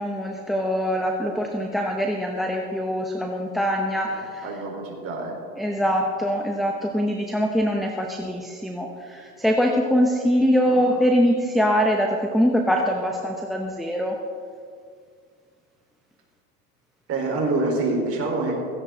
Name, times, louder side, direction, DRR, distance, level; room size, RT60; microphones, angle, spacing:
voice 1, 0.0-4.4 5.6-14.2, equal, ahead, 2 dB, 0.8 m, -23 dB
voice 2, 4.4-5.3 10.7-10.8 17.1-18.5, right 2 dB, 30° right, 0 dB, 4.3 m, -26 dB
16.5 x 15.5 x 3.9 m, 2.1 s
supercardioid pair, 130°, 48 cm